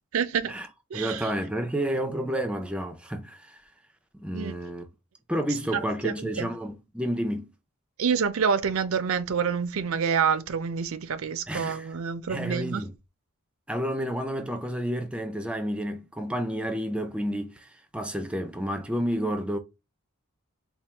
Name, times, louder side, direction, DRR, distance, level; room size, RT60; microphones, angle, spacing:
voice 1, 0.1-0.5 0.9-1.3 4.3-4.5 6.0-6.5 8.0-12.8, right 6 dB, 70° right, 0.5 m, -27 dB
voice 2, 0.9-3.6 4.1-4.8 5.3-7.5 11.5-11.9 12.3-12.9 13.7-19.6, equal, 5° right, 0.4 m, -30 dB
4.3 x 2.3 x 3.4 m
head